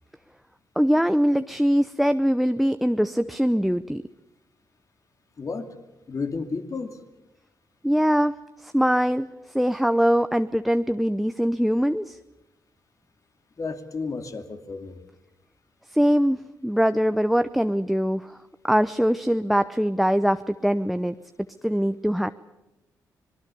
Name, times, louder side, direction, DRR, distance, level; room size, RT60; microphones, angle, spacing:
voice 1, 0.8-4.0 7.8-8.3 8.6-9.3 9.5-12.2 15.9-18.3 18.7-21.2 21.6-22.3, equal, ahead, 10 dB, 0.7 m, -22 dB
voice 2, 5.4-5.7 6.1-7.0 13.6-15.0, left 4 dB, 50° left, 7 dB, 2.6 m, -32 dB
25.5 x 20.0 x 7.0 m, 1.0 s
cardioid pair, 65°, 7 cm